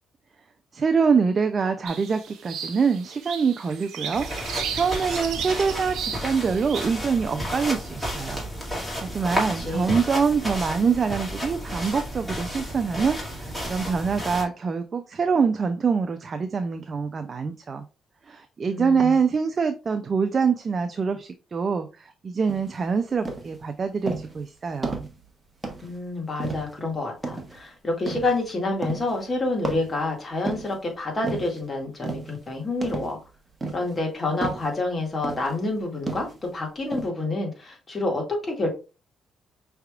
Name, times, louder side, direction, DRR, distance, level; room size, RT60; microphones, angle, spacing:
voice 1, 0.7-8.4 9.0-17.8 18.3-25.1, right 5 dB, 40° right, 7 dB, 0.4 m, -25 dB
sound 1, 1.9-6.9, right 7 dB, 75° right, 0.9 m, -35 dB
sound 2, 4.1-14.4, equal, 10° left, 2.2 m, -32 dB
voice 2, 9.1-10.0 18.6-19.1 25.8-33.2 33.7-38.7, left 2 dB, 30° left, 0 dB, 2.0 m, -28 dB
sound 3, 22.5-22.8 23.3-23.6 24.1-24.4 24.8-25.2 25.6-26.0 26.4-26.8 27.2-27.6 28.1-28.4 28.8-29.2 29.6-30.8 31.2-31.6 32.0-32.4 32.8-33.2 33.6-34.0 34.4-34.7 35.2-35.6 36.1-36.5 36.9-37.1, right 3 dB, 25° right, 1.1 m, -32 dB
5.6 x 3.4 x 2.4 m, 0.31 s
cardioid pair, 90°, 0 cm